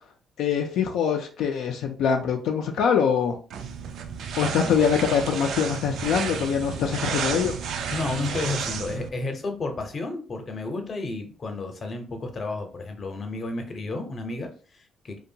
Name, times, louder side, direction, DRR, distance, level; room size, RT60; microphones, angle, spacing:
voice 1, 0.4-3.4 4.4-7.6, left 7 dB, 85° left, 3 dB, 0.3 m, -24 dB
sound 1, 3.5-9.1, right 6 dB, 75° right, 0.3 m, -32 dB
voice 2, 7.9-15.2, left 3 dB, 40° left, 5 dB, 0.6 m, -32 dB
2.7 x 2.2 x 2.7 m, 0.40 s
cardioid pair, 90°, 0 cm